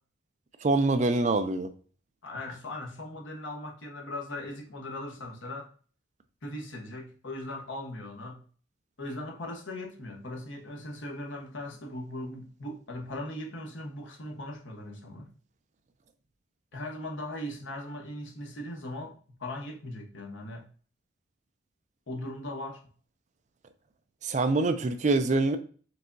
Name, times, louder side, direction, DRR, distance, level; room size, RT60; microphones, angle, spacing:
voice 1, 0.6-1.7 24.2-25.6, right 3 dB, 35° right, 0.4 m, -25 dB
voice 2, 2.2-5.7 6.4-8.4 9.0-15.3 16.7-19.1 19.4-20.7 22.1-22.8, left 1 dB, 75° left, 1.0 m, -39 dB
4.7 x 3.4 x 2.6 m
head